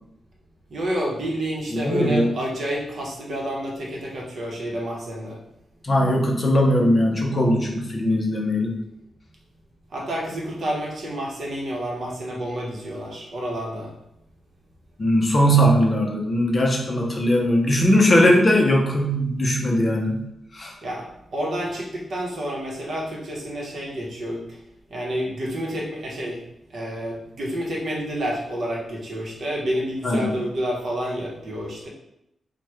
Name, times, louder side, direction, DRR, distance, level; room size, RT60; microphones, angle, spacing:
voice 1, 0.7-5.4 9.9-13.9 20.8-24.6 24.9-26.4 26.7-31.9, equal, 55° right, -3 dB, 0.8 m, -29 dB
voice 2, 1.7-2.3 5.8-8.7 15.0-20.2 20.5-20.7 30.0-30.3, equal, 30° left, 0 dB, 0.5 m, -19 dB
2.9 x 2.1 x 3.3 m, 0.83 s
wide cardioid pair, 130°, 0 cm